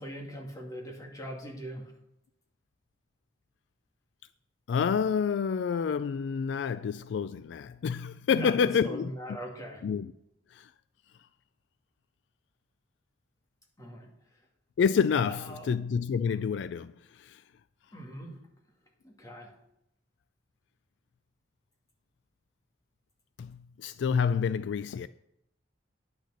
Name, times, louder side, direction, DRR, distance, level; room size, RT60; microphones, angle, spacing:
voice 1, 0.0-1.9 8.3-8.6 8.8-9.8 13.8-14.1 15.2-15.7 17.9-18.4 19.0-19.5, right 1 dB, 20° left, 2.3 m, -41 dB
voice 2, 4.7-9.1 9.8-10.1 10.5-10.7 14.8-17.4 23.4-25.1, left 6 dB, 65° left, 0.3 m, -28 dB
10.0 x 6.5 x 6.4 m
head